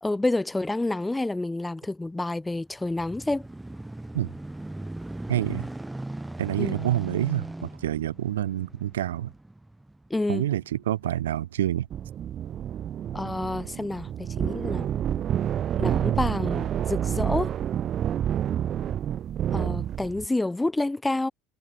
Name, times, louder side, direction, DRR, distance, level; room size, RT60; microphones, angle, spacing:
voice 1, 0.0-3.5 6.6-6.8 10.1-10.4 13.1-14.9 15.8-17.5 19.5-21.3, left 2 dB, 10° left, 0.5 m, -28 dB
sound 1, 2.4-11.2 11.8-11.9, right 2 dB, 10° right, 3.1 m, -39 dB
voice 2, 5.3-5.7 6.4-9.3 10.3-11.9, right 12 dB, 85° right, 1.3 m, -27 dB
sound 2, 11.9-20.3, right 10 dB, 45° right, 0.4 m, -28 dB
hypercardioid pair, 75°, 0 cm